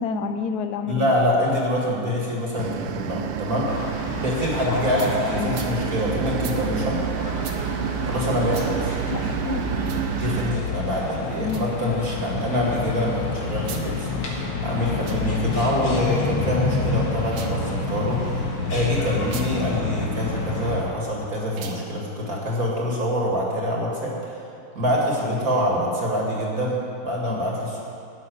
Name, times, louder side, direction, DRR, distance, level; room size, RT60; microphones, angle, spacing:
voice 1, 0.0-1.1 5.4-5.6 9.1-9.7 11.3-12.0 27.3-27.4, left 5 dB, 65° left, 8 dB, 1.0 m, -29 dB
voice 2, 0.9-3.7 4.2-7.0 8.1-8.9 10.2-24.4 24.7-27.8, left 1 dB, 40° right, -3 dB, 2.3 m, -25 dB
sound 1, 2.6-10.6, right 10 dB, 90° right, 1.5 m, -29 dB
sound 2, 3.7-20.8, left 3 dB, 80° left, 2.7 m, -29 dB
sound 3, 5.0-5.1 5.5-5.7 6.4-6.6 7.4-7.6 8.5-8.7 9.8-10.1 11.4-11.7 13.6-13.9 14.9-15.2 17.2-17.6 19.2-19.5 21.5-21.8, right 7 dB, 70° right, 1.8 m, -39 dB
13.0 x 6.3 x 9.2 m, 2.5 s
omnidirectional pair, 2.4 m